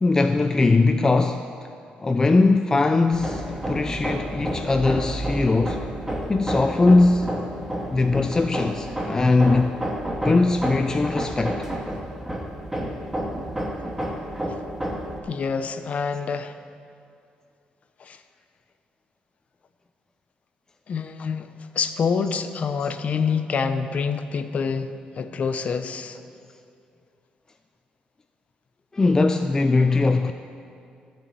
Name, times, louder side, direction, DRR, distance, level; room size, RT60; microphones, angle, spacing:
voice 1, 0.0-1.5 2.0-5.9 6.3-7.4 7.9-9.8 10.2-11.7 28.9-30.3, left 3 dB, 20° left, 0.5 m, -20 dB
Hammer, 3.1-15.2, right 1 dB, 10° right, 1.9 m, -30 dB
voice 2, 15.3-16.6 18.0-18.2 20.9-26.2, left 5 dB, 50° left, 0.8 m, -27 dB
14.5 x 7.0 x 9.0 m
cardioid pair, 105°, 3 cm